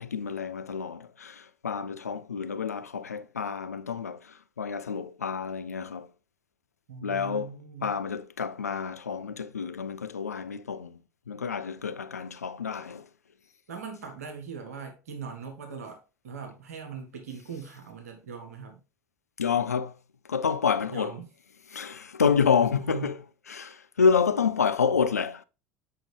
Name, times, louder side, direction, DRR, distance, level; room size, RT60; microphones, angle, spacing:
voice 1, 0.0-6.1 7.0-7.5 7.8-11.0 11.3-13.0 19.4-19.9 20.3-21.1 21.7-23.2 23.5-25.4, left 6 dB, 85° left, 0.4 m, -28 dB
voice 2, 6.9-7.9 13.7-18.8 20.9-21.3 22.2-23.1, right 6 dB, 75° right, 1.3 m, -40 dB
7.6 x 5.1 x 3.2 m
figure-of-eight pair, 65°, 8 cm